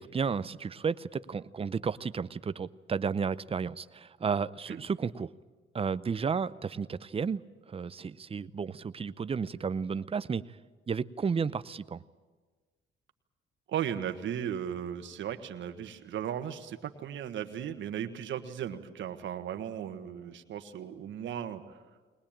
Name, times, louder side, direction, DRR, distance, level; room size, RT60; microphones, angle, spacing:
voice 1, 0.0-5.3 5.7-7.4 7.7-10.4 10.9-12.0, right 6 dB, 30° right, 15 dB, 0.6 m, -32 dB
voice 2, 13.7-21.8, right 9 dB, 70° right, 8 dB, 1.4 m, -36 dB
21.0 x 20.0 x 8.9 m, 1.4 s
cardioid pair, 90°, 20 cm